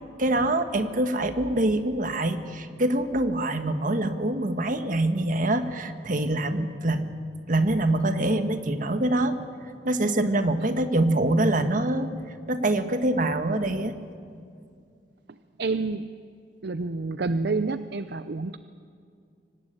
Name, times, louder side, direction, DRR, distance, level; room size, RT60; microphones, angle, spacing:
voice 1, 0.2-7.1 7.5-9.4 9.8-12.1 12.5-13.9, right 1 dB, 50° right, 8 dB, 1.4 m, -25 dB
voice 2, 15.3-16.1 16.6-18.6, right 3 dB, 65° right, 12 dB, 0.6 m, -29 dB
25.0 x 18.0 x 8.9 m, 2.3 s
head